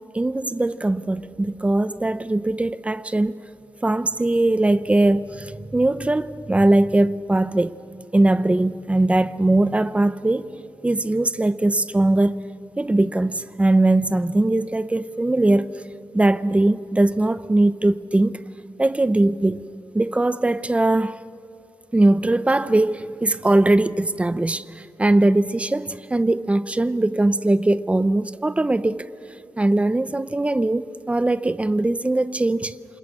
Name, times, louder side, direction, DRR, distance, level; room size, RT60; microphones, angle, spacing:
voice 1, 0.0-3.4 3.8-7.8 8.1-10.5 10.8-12.3 12.8-15.7 16.1-18.4 18.8-19.7 19.9-21.2 21.9-29.0 29.6-32.7, right 2 dB, 15° right, 0.7 m, -20 dB
29.0 x 26.5 x 6.5 m
wide cardioid pair, 110°, 7 cm